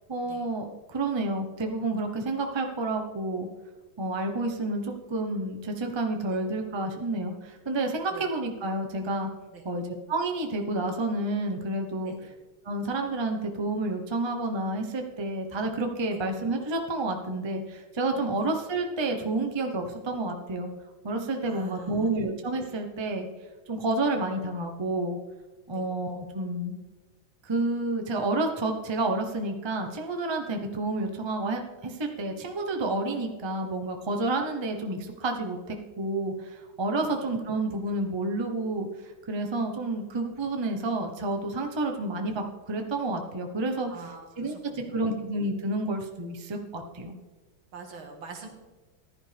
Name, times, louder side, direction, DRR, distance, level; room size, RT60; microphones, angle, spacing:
voice 1, 0.1-3.5 4.0-9.3 9.6-9.8 10.1-12.3 12.6-20.7 21.0-23.3 23.7-25.2 25.7-26.8 27.4-43.9 44.4-47.2, right 2 dB, 40° right, 3 dB, 0.3 m, -30 dB
voice 2, 21.4-22.1 25.7-25.9 37.1-37.2 43.9-45.2 47.7-48.5, right 5 dB, 85° right, 3 dB, 2.4 m, -45 dB
14.5 x 11.0 x 3.4 m, 1.3 s
omnidirectional pair, 2.2 m